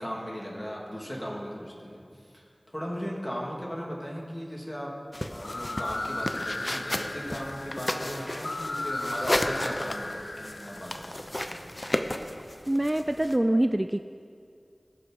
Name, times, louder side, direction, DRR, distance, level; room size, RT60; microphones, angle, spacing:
voice 1, 0.0-2.0 2.3-5.0 5.3-11.6, equal, 20° left, -3 dB, 2.7 m, -37 dB
sound 1, 5.1-13.3, left 1 dB, 35° left, 0.7 m, -34 dB
sound 2, 5.3-11.1, left 2 dB, 70° left, 0.5 m, -36 dB
voice 2, 12.7-14.0, right 1 dB, 30° right, 8 dB, 0.3 m, -25 dB
19.0 x 6.5 x 4.7 m, 2.4 s
wide cardioid pair, 45°, 0 cm